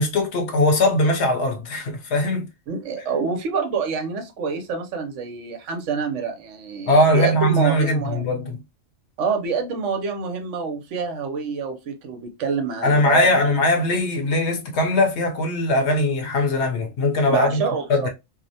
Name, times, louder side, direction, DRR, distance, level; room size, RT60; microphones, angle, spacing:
voice 1, 0.0-2.5 6.9-8.6 12.8-17.6 17.9-18.1, left 1 dB, 65° left, 0.9 m, -20 dB
voice 2, 2.7-8.3 9.2-13.5 17.3-18.1, right 5 dB, 70° right, 0.9 m, -27 dB
2.7 x 2.0 x 2.6 m
omnidirectional pair, 1.4 m